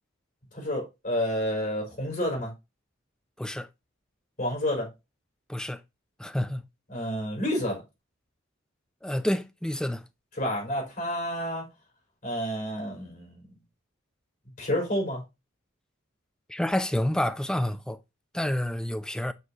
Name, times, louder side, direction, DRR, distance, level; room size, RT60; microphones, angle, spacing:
voice 1, 0.5-2.5 4.4-4.9 6.9-7.8 10.4-11.7 12.2-13.6 14.6-15.2, equal, 45° left, 4.6 m, -29 dB
voice 2, 6.2-6.6 9.0-10.0 16.5-18.0 18.3-19.3, left 1 dB, 5° left, 0.4 m, -28 dB
8.1 x 4.8 x 2.8 m
head